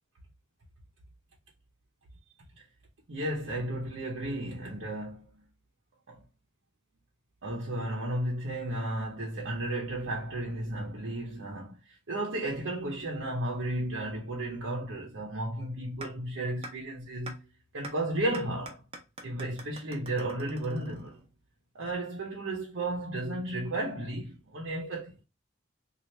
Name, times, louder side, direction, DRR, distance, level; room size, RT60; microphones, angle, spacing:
voice 1, 3.1-5.3 6.1-6.2 7.4-17.5 17.7-18.8 19.2-21.2 21.7-25.1, right 1 dB, 85° right, 0.8 m, -34 dB
sound 1, 16.0-16.1 16.6-16.7 17.3-17.4 17.8-17.9 18.3-21.3, right 2 dB, 30° right, 0.7 m, -43 dB
2.8 x 2.4 x 3.1 m
head